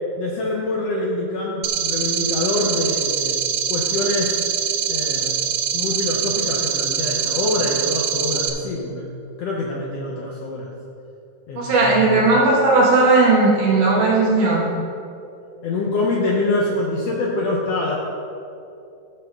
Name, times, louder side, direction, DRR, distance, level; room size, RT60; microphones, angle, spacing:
voice 1, 0.2-3.4 3.7-4.4 4.9-5.4 5.7-9.1 9.4-10.7 11.5-12.3 15.6-18.0, left 2 dB, 70° left, -2 dB, 1.6 m, -25 dB
sound 1, 1.6-8.5, right 8 dB, 85° right, 1.3 m, -23 dB
voice 2, 11.6-14.6, right 3 dB, 70° right, -5 dB, 3.4 m, -16 dB
14.5 x 6.8 x 3.7 m, 2.7 s
omnidirectional pair, 3.8 m